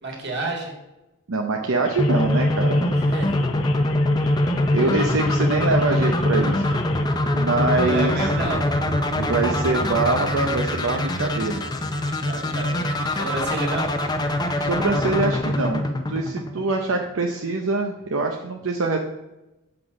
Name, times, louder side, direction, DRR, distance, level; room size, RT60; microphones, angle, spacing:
voice 1, 0.0-0.7 2.9-3.4 7.7-8.7 12.2-13.9, right 2 dB, 50° right, 0 dB, 2.0 m, -30 dB
voice 2, 1.3-2.9 4.7-6.6 7.3-8.3 9.2-11.6 14.6-15.8 16.1-19.0, right 3 dB, 70° right, 2 dB, 0.7 m, -24 dB
sound 1, 1.8-7.1, left 6 dB, 65° left, 0.6 m, -38 dB
sound 2, 2.0-16.9, left 1 dB, 20° left, 0.6 m, -23 dB
sound 3, 6.2-15.9, equal, 80° left, 1.8 m, -37 dB
7.7 x 6.0 x 5.0 m, 1.0 s
head